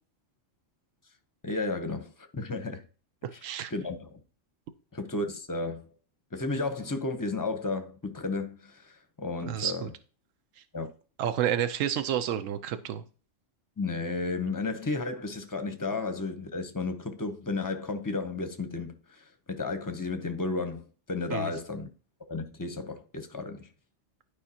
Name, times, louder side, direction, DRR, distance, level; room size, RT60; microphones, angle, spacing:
voice 1, 1.4-2.8 3.3-3.4 3.7-4.2 4.9-5.9 6.3-8.9 9.2-9.9 10.7-10.9 13.8-21.9 22.3-23.7, left 3 dB, 20° left, 0.6 m, -33 dB
voice 2, 3.2-3.7 9.5-9.9 11.2-13.0 21.3-21.5, right 10 dB, 90° right, 1.0 m, -30 dB
11.5 x 4.9 x 2.8 m
omnidirectional pair, 1.3 m